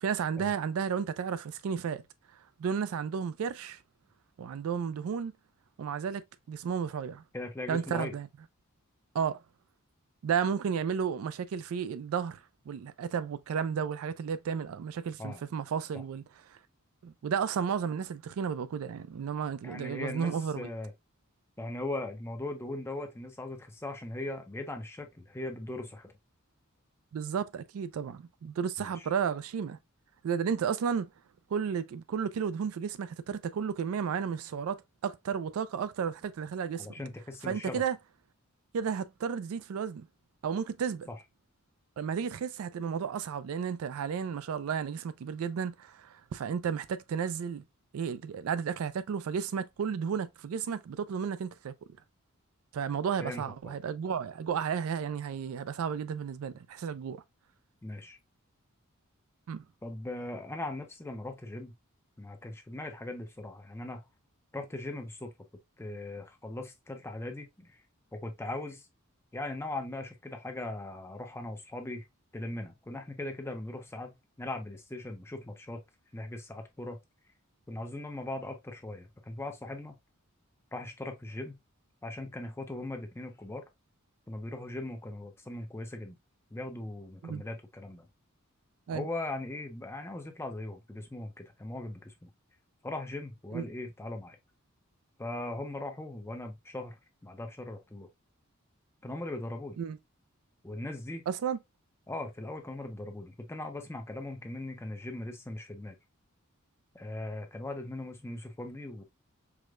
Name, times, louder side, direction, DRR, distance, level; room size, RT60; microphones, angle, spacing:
voice 1, 0.0-2.0 2.6-3.8 4.4-5.3 5.8-6.2 6.5-7.2 7.7-8.3 9.1-9.4 10.2-12.4 12.7-16.2 17.0-20.7 27.1-29.8 30.2-31.1 31.5-36.9 37.4-38.0 38.7-40.1 40.4-41.1 42.0-47.6 47.9-51.7 52.7-57.2 59.5-59.6 87.2-87.4 88.9-89.0 93.5-93.7 99.8-100.0 101.3-101.6, right 7 dB, 75° right, 0.3 m, -33 dB
voice 2, 7.3-8.2 15.2-15.4 15.9-16.0 19.6-20.9 21.6-26.1 28.8-29.1 36.8-37.9 41.1-41.2 53.2-53.8 57.8-58.2 59.8-61.7 62.2-64.1 64.5-65.3 65.8-67.8 68.1-68.9 69.3-72.0 72.3-75.8 76.1-77.0 77.7-80.0 80.7-81.6 82.0-83.6 84.3-86.2 86.5-88.1 88.9-92.3 92.8-94.4 95.2-98.1 99.0-99.8 100.6-101.2 102.1-106.0 106.9-109.0, left 2 dB, 10° left, 0.5 m, -39 dB
4.8 x 2.1 x 2.3 m
head